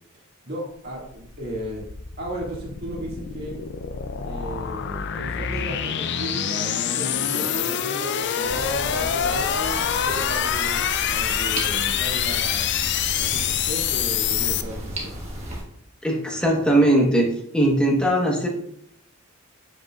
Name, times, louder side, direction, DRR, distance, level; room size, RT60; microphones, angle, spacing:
voice 1, 0.5-1.8 2.2-3.6 4.2-12.7 13.2-15.1, right 1 dB, 45° right, -4 dB, 2.1 m, -35 dB
sound 1, 0.9-14.6, left 8 dB, 50° left, 0.4 m, -26 dB
sound 2, 8.4-15.6, equal, 30° right, 1.3 m, -34 dB
voice 2, 16.0-17.3 17.5-18.5, right 1 dB, 5° left, -1 dB, 1.1 m, -19 dB
7.9 x 5.3 x 2.4 m, 0.69 s
head